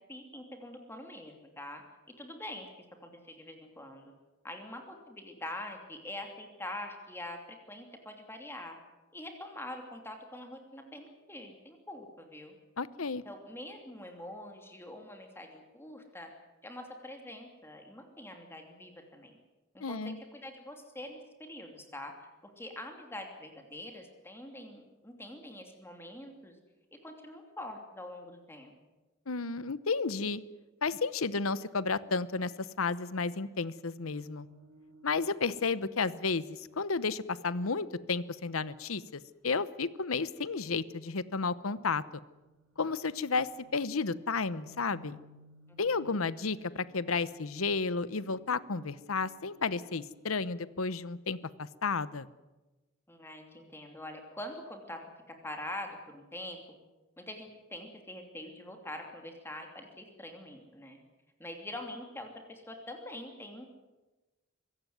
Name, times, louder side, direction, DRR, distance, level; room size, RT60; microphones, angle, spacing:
voice 1, 0.1-1.8 2.2-2.7 3.0-4.1 4.4-7.4 7.7-8.8 9.1-12.5 13.2-16.3 16.6-19.4 19.7-22.1 22.4-26.5 27.0-28.7 45.7-46.1 53.1-55.0 55.3-56.6 57.2-61.0 61.4-63.7, left 1 dB, 10° left, 4 dB, 2.9 m, -44 dB
voice 2, 12.8-13.2 19.8-20.2 29.3-30.4 30.8-32.5 32.8-34.5 35.0-42.0 42.8-45.2 45.8-52.3, left 4 dB, 85° left, 17 dB, 0.9 m, -32 dB
sound 1, 34.0-38.2 41.2-50.5, right 2 dB, 90° right, 3.1 m, -60 dB
23.5 x 16.5 x 9.5 m, 1.1 s
head